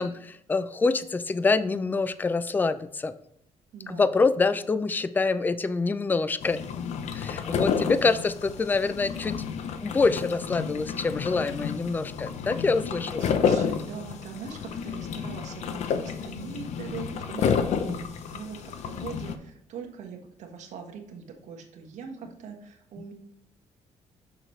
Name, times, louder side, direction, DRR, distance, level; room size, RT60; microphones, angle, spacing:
voice 1, 0.0-3.1 3.9-6.6 7.1-9.4 9.8-13.2, left 4 dB, 15° left, 14 dB, 0.4 m, -26 dB
voice 2, 3.7-4.2 7.5-8.2 12.3-12.4 12.9-23.1, right 6 dB, 75° right, 3 dB, 1.4 m, -42 dB
sound 1, 6.4-19.4, left 7 dB, 70° left, 0.7 m, -30 dB
6.4 x 6.4 x 3.2 m, 0.70 s
cardioid pair, 110°, 12 cm